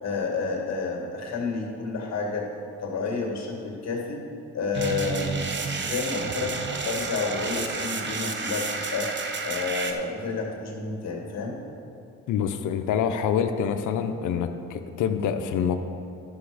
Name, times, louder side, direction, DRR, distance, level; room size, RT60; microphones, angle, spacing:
voice 1, 0.0-2.5 2.8-4.2 4.5-9.1 9.4-11.6, left 4 dB, 60° left, 0 dB, 2.1 m, -30 dB
sound 1, 4.7-9.9, right 4 dB, 40° right, 0.9 m, -31 dB
voice 2, 12.3-15.8, left 7 dB, 80° left, 8 dB, 0.8 m, -26 dB
11.5 x 7.0 x 5.0 m, 2.6 s
cardioid pair, 90°, 30 cm